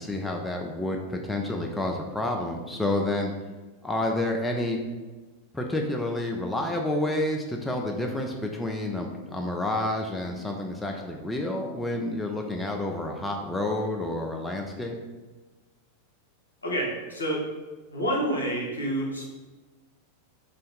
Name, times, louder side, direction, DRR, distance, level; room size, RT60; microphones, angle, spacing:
voice 1, 0.0-3.3 3.8-4.8 5.5-15.0, left 1 dB, 10° left, 1 dB, 0.3 m, -29 dB
voice 2, 16.6-17.4 17.9-19.2, right 1 dB, 75° left, -3 dB, 0.8 m, -28 dB
2.5 x 2.5 x 3.6 m, 1.2 s
figure-of-eight pair, 90°, 0 cm